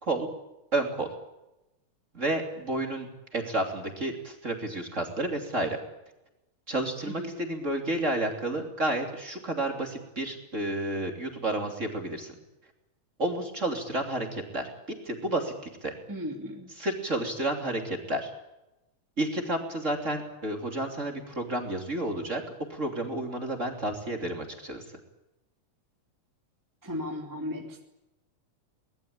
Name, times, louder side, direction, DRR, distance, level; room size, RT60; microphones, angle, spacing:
voice 1, 0.7-1.1 2.1-5.8 6.7-12.3 13.2-14.7 15.0-15.9 16.8-18.3 19.2-22.4 22.7-24.8, right 1 dB, 25° right, 2 dB, 3.1 m, -31 dB
voice 2, 16.1-16.7 26.8-27.8, left 1 dB, 5° right, 1 dB, 2.2 m, -36 dB
24.0 x 20.0 x 8.7 m, 0.96 s
omnidirectional pair, 3.7 m